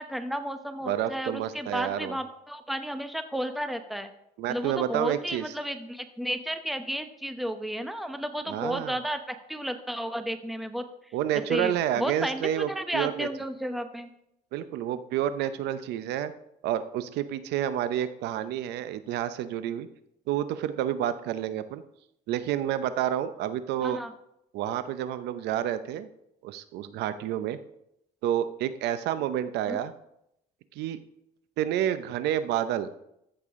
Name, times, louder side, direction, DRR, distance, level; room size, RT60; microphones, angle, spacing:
voice 1, 0.0-4.1 4.5-10.8 11.5-14.1 23.8-24.1 29.7-29.8, equal, ahead, 8 dB, 0.9 m, -33 dB
voice 2, 0.9-2.2 4.4-5.5 8.5-9.0 11.1-13.3 14.5-16.3 16.6-19.9 20.3-21.8 22.3-24.0 24.5-26.1 26.4-27.6 28.2-29.9 30.8-31.0 31.6-32.9, right 11 dB, 85° right, 12 dB, 0.6 m, -29 dB
14.0 x 6.9 x 3.6 m, 0.80 s
cardioid pair, 110°, 17 cm